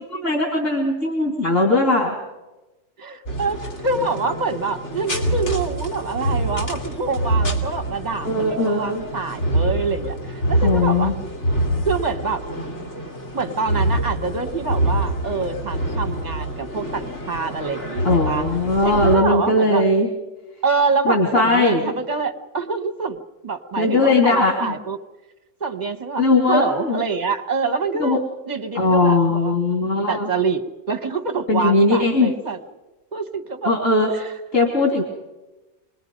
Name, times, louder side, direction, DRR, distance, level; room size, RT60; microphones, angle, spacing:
voice 1, 0.2-2.2 8.2-9.0 10.6-11.1 18.0-20.1 21.0-21.9 23.8-24.7 26.2-27.0 28.0-28.2 28.7-30.3 31.5-32.3 33.6-34.1 34.5-35.0, left 2 dB, 85° left, 0 dB, 3.2 m, -19 dB
voice 2, 3.0-11.1 11.8-12.4 13.3-18.5 18.8-19.8 20.6-25.0 25.6-29.5 29.8-30.6 30.9-32.6 33.1-33.7 34.1-34.2, right 4 dB, 35° right, 8 dB, 1.4 m, -26 dB
sound 1, 3.3-19.2, right 1 dB, 65° left, 2.9 m, -26 dB
27.0 x 20.5 x 5.3 m, 1.1 s
omnidirectional pair, 1.3 m